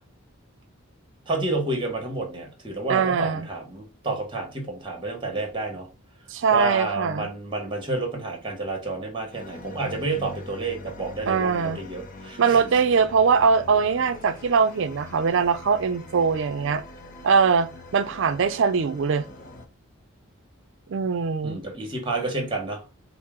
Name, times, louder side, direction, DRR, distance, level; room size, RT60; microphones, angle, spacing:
voice 1, 1.3-5.9 6.5-12.6 21.4-22.8, right 2 dB, 20° right, 1.1 m, -30 dB
voice 2, 2.9-3.5 6.3-7.3 11.3-11.8 12.4-16.8 17.2-19.3 20.9-21.6, right 5 dB, 60° right, 0.4 m, -22 dB
sound 1, 9.3-19.7, left 2 dB, 40° left, 0.5 m, -43 dB
4.3 x 2.0 x 3.6 m
head